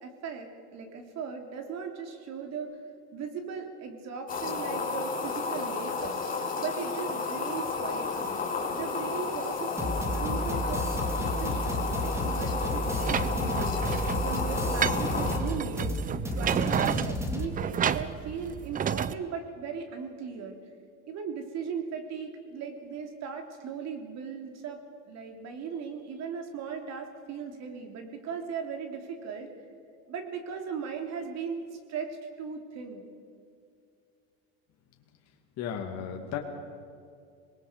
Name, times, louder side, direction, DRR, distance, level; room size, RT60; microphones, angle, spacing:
voice 1, 0.0-2.7 3.1-6.2 6.6-8.4 8.7-10.8 11.1-13.8 14.2-16.0 16.3-20.5 21.1-24.8 25.1-29.5 30.1-31.6 31.9-33.0, right 6 dB, 50° right, 4 dB, 3.2 m, -38 dB
sound 1, 4.3-15.4, left 4 dB, 25° left, 3.6 m, -32 dB
sound 2, 9.8-17.5, left 1 dB, 10° right, 2.0 m, -32 dB
sound 3, 12.9-19.1, right 8 dB, 25° right, 0.6 m, -31 dB
voice 2, 35.6-36.4, left 8 dB, 45° left, 1 dB, 2.4 m, -34 dB
26.5 x 20.0 x 5.2 m, 2.4 s
supercardioid pair, 110°, 35 cm